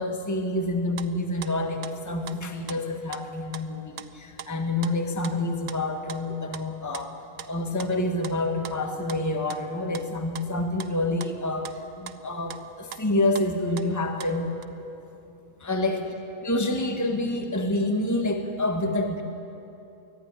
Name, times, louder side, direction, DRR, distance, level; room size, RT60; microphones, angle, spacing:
voice 1, 0.0-7.1 7.5-14.5 15.6-16.1 16.4-19.2, left 2 dB, 10° left, 3 dB, 1.5 m, -28 dB
sound 1, 0.7-2.4 2.7-2.8 3.1-3.2 3.5-4.1 4.4-14.6, right 9 dB, 70° right, 1.2 m, -42 dB
23.5 x 15.5 x 9.9 m, 2.9 s
omnidirectional pair, 1.6 m